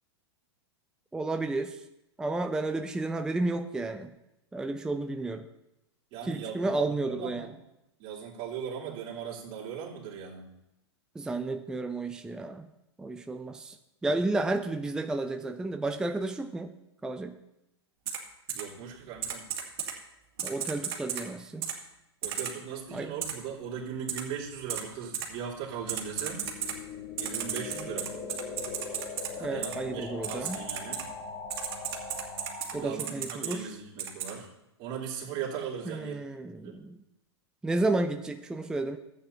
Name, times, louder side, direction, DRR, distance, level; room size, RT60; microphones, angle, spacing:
voice 1, 1.1-1.8 2.2-4.1 4.5-5.5 6.2-7.5 11.1-12.7 13.0-13.8 14.0-16.7 17.0-17.4 20.4-21.7 22.9-23.1 29.4-30.6 32.7-33.7 35.8-37.0 37.6-39.0, right 2 dB, 5° right, 6 dB, 0.5 m, -32 dB
voice 2, 6.1-7.5 8.0-10.5 18.5-19.5 22.2-26.4 27.2-28.1 29.3-31.0 32.7-34.5 34.8-36.2 36.5-36.7, right 7 dB, 40° right, -5 dB, 3.3 m, -38 dB
Typing, 18.1-18.2 18.5-18.6 19.2-19.9 20.4-21.2 21.6-21.7 22.2-22.5 23.2-23.3 24.1-24.2 24.7-24.8 25.1-25.2 25.9-26.7 27.2-29.3 29.6-29.8 30.2-31.0 31.5-32.7 33.0-33.5 34.0-34.3, right 9 dB, 60° right, 2.2 m, -33 dB
sound 1, 23.8-32.9, left 4 dB, 45° left, 3.9 m, -42 dB
14.5 x 8.5 x 2.8 m, 0.88 s
figure-of-eight pair, 105°, 15 cm